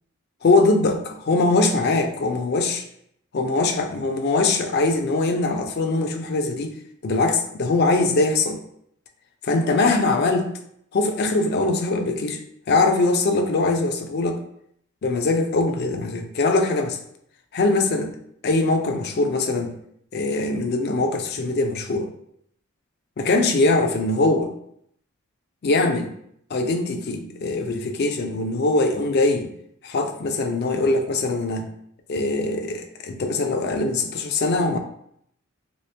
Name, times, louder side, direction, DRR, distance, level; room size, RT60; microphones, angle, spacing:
voice 1, 0.4-2.8 3.3-6.7 7.0-8.6 9.4-10.5 10.9-12.4 12.7-14.4 15.0-17.0 17.5-18.2 18.4-19.8 20.1-22.1 23.2-24.5 25.6-26.1 26.5-29.5 29.8-31.7 32.1-34.8, left 3 dB, 50° left, 6 dB, 0.4 m, -22 dB
2.9 x 2.8 x 3.2 m, 0.69 s
head